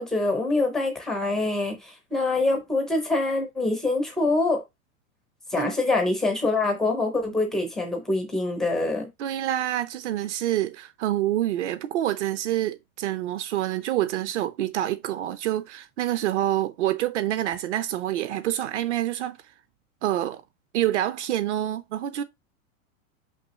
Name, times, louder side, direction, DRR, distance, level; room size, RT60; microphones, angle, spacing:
voice 1, 0.0-4.6 5.5-9.1, left 2 dB, ahead, 0.4 m, -25 dB
voice 2, 9.2-19.4 20.0-20.4 20.7-22.2, right 13 dB, 55° right, 0.7 m, -27 dB
5.8 x 5.6 x 2.9 m
supercardioid pair, 170°, 41 cm